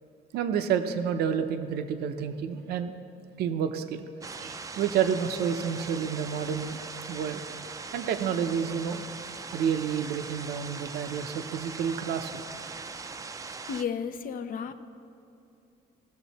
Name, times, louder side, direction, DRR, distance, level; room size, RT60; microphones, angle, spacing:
voice 1, 0.3-2.9 3.4-4.1 4.4-6.8 7.1-7.4 7.9-9.0 9.5-12.4, right 7 dB, 70° right, 8 dB, 0.6 m, -29 dB
sound 1, 4.2-13.8, right 4 dB, 20° right, 0.4 m, -40 dB
voice 2, 13.6-14.7, left 7 dB, 55° left, 10 dB, 0.6 m, -33 dB
17.0 x 6.7 x 4.1 m, 2.7 s
cardioid pair, 110°, 17 cm